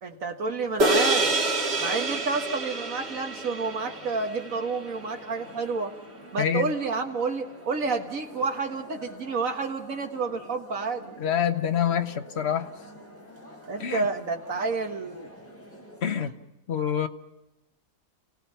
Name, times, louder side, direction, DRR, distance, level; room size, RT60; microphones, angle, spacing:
voice 1, 0.0-1.4 1.8-5.9 6.3-11.1 13.7-15.3 16.1-16.2, right 4 dB, 75° right, 4 dB, 2.0 m, -30 dB
sound 1, 0.6-16.0, left 1 dB, 10° left, 6.0 m, -48 dB
sound 2, 0.8-5.4, right 2 dB, 50° right, 2.0 m, -27 dB
voice 2, 6.4-6.7 11.2-12.7 13.8-14.1 16.0-16.3 16.7-17.1, left 8 dB, 55° left, 8 dB, 1.2 m, -26 dB
29.0 x 17.0 x 5.6 m, 0.92 s
omnidirectional pair, 1.4 m